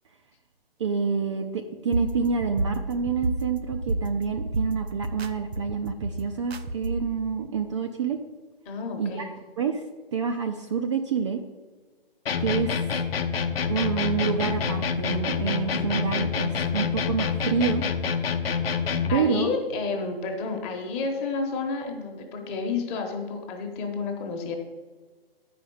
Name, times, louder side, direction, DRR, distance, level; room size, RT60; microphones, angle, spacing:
voice 1, 0.8-8.2 9.0-9.3 9.6-9.8 10.1-11.4 12.4-12.9 13.7-17.8 19.1-19.5, right 6 dB, 30° right, 5 dB, 0.4 m, -27 dB
sound 1, 1.9-7.2, right 2 dB, 85° right, 0.7 m, -31 dB
voice 2, 8.7-9.3 19.1-24.5, left 4 dB, 20° left, 3 dB, 1.1 m, -30 dB
sound 2, 12.3-19.2, left 6 dB, 70° left, 0.8 m, -27 dB
8.8 x 5.1 x 6.9 m, 1.4 s
hypercardioid pair, 140°, 30 cm